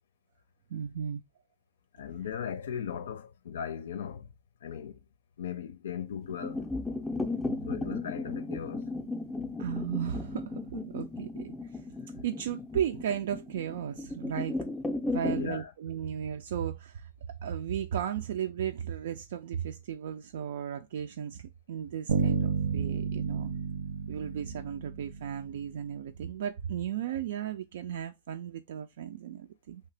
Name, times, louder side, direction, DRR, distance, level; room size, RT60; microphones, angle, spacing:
voice 1, 0.7-1.2 7.4-7.5 9.6-11.8 12.2-14.6 15.1-17.1 17.4-23.5 24.1-29.8, right 9 dB, 65° right, 0.3 m, -35 dB
voice 2, 1.9-4.3 4.6-5.0 5.4-6.7 7.7-8.9 15.2-15.7, left 8 dB, 85° left, 0.5 m, -38 dB
sound 1, 6.2-15.5, left 2 dB, 5° left, 0.4 m, -35 dB
Bass guitar, 22.1-25.9, right 6 dB, 85° right, 0.9 m, -31 dB
2.9 x 2.8 x 3.3 m
supercardioid pair, 170°, 0 cm